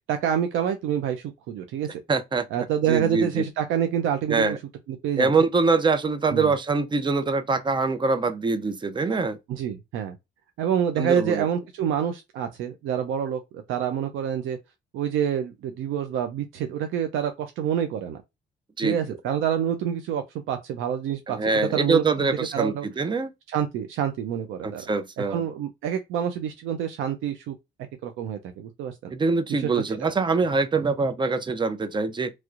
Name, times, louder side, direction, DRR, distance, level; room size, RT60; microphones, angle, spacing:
voice 1, 0.1-1.9 2.5-4.6 5.0-5.3 6.3-6.5 9.5-10.2 10.6-14.6 14.9-18.2 18.8-22.9 23.5-24.9 25.3-27.5 28.0-29.1 29.5-30.1, right 9 dB, 90° right, 0.5 m, -27 dB
voice 2, 2.1-3.4 4.3-4.6 5.2-9.4 11.0-11.5 18.8-19.0 21.3-23.3 24.6-25.4 29.1-32.3, right 4 dB, 25° right, 0.5 m, -24 dB
3.1 x 3.0 x 2.4 m
cardioid pair, 90°, 20 cm